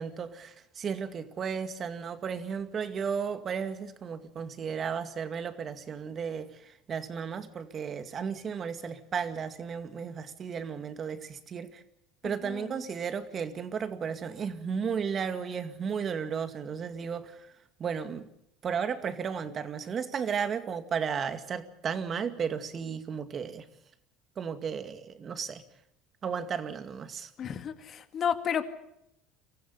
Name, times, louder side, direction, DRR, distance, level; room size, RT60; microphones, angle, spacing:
voice 1, 0.0-11.8 12.2-17.4 17.8-18.3 18.6-23.7 24.4-25.6 26.2-27.3, right 6 dB, 40° right, 2.2 m, -34 dB
voice 2, 12.2-12.8 27.4-28.6, left 8 dB, 45° left, 2.2 m, -32 dB
24.0 x 15.0 x 10.0 m
supercardioid pair, 90°, 0 cm